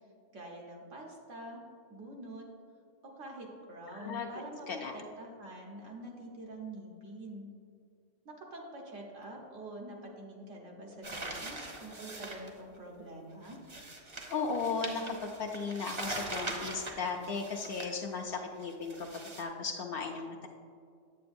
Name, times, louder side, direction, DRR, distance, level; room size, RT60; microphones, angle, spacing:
voice 1, 0.3-1.6 1.9-2.5 3.0-7.5 8.2-13.6, right 1 dB, 80° right, -1 dB, 1.5 m, -46 dB
voice 2, 3.9-4.3 4.7-4.9 14.3-15.1 15.4-19.1 19.4-20.5, left 4 dB, 60° left, 2 dB, 0.7 m, -36 dB
sound 1, 11.0-12.5 13.4-18.0 18.6-19.4, right 2 dB, 30° right, 0.6 m, -42 dB
8.4 x 7.8 x 2.6 m, 2.3 s
omnidirectional pair, 1.3 m